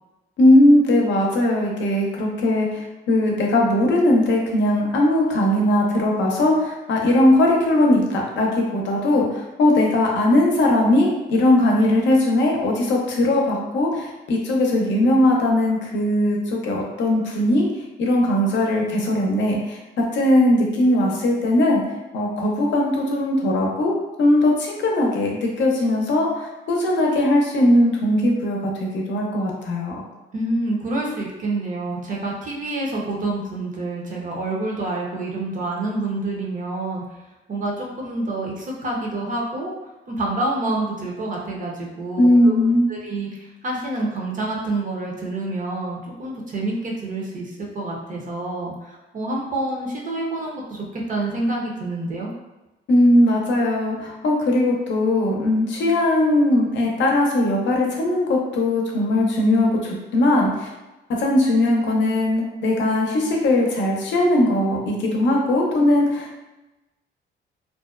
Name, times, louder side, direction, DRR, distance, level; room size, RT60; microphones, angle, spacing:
voice 1, 0.4-17.7 18.0-21.8 22.1-30.0 42.2-42.9 52.9-60.7 61.1-66.4, left 1 dB, 65° left, 0 dB, 0.6 m, -19 dB
voice 2, 30.3-37.0 37.5-39.7 40.1-42.5 42.9-52.3, right 2 dB, 40° right, -2 dB, 0.7 m, -27 dB
2.5 x 2.1 x 2.3 m, 1.0 s
cardioid pair, 90°, 20 cm